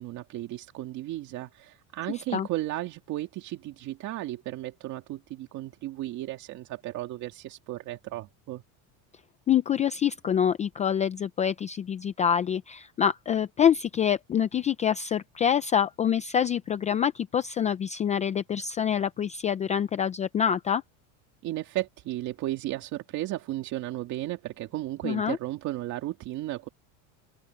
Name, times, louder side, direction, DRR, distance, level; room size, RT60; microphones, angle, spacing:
voice 1, 0.0-8.6 21.4-26.7, right 15 dB, 45° right, 2.2 m, -34 dB
voice 2, 9.5-20.8 25.0-25.4, left 8 dB, 20° left, 0.4 m, -26 dB
open air
cardioid pair, 155°, 39 cm